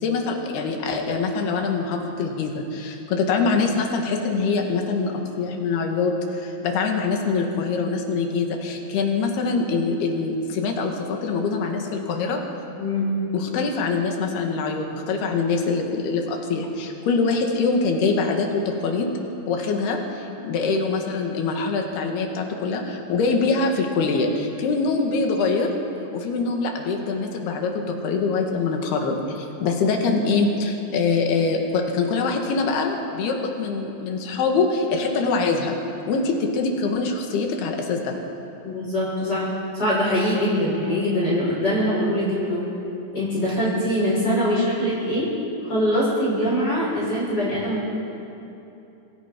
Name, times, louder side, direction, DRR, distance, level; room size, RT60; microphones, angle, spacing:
voice 1, 0.0-5.1 5.4-12.4 13.3-19.1 19.5-25.7 26.1-35.8 36.1-38.2, left 4 dB, 85° left, 2 dB, 3.9 m, -24 dB
voice 2, 12.8-13.1 38.6-39.5 39.7-42.6 43.1-45.3 45.6-47.9, equal, 25° left, -7 dB, 6.6 m, -23 dB
27.5 x 20.5 x 5.3 m, 2.9 s
omnidirectional pair, 4.4 m